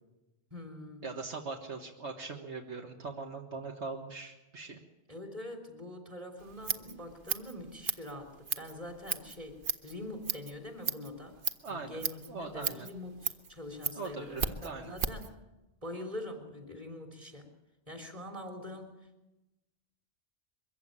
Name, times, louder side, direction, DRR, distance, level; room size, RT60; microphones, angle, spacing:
voice 1, 0.5-1.1 5.1-11.4 11.7-15.3 15.8-17.5 17.9-18.9, left 1 dB, 30° right, 3 dB, 3.5 m, -44 dB
voice 2, 1.0-4.8 11.6-12.9 14.0-14.9, right 4 dB, 70° right, 2 dB, 1.8 m, -41 dB
Scissors, 6.4-15.3, right 5 dB, 50° right, 1.1 m, -37 dB
22.5 x 15.5 x 8.9 m, 1.0 s
omnidirectional pair, 1.2 m